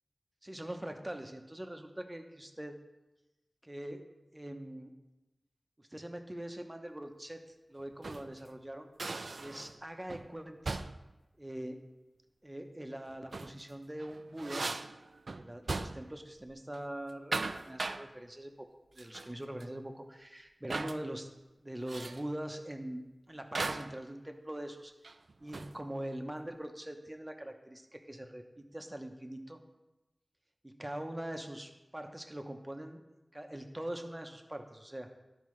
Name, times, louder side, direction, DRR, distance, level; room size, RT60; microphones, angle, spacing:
voice 1, 0.4-2.8 3.6-4.1 4.3-4.9 5.8-7.4 7.7-8.9 9.4-10.8 11.4-11.8 12.4-14.7 15.3-18.7 18.9-21.3 21.6-24.9 25.4-29.6 30.6-33.0 33.3-35.1, right 1 dB, 20° right, 5 dB, 0.7 m, -43 dB
sound 1, 7.8-8.3 9.0-9.8 10.1-10.3 10.7-11.1 13.1-13.6 14.0-16.2 16.5-16.8 17.1-18.1 19.0-19.3 19.6-19.7 20.7-21.0 21.9-22.3 23.5-24.0 25.0-25.8, right 3 dB, 80° right, 0.3 m, -38 dB
12.0 x 4.6 x 3.1 m, 1.0 s
wide cardioid pair, 70°, 0 cm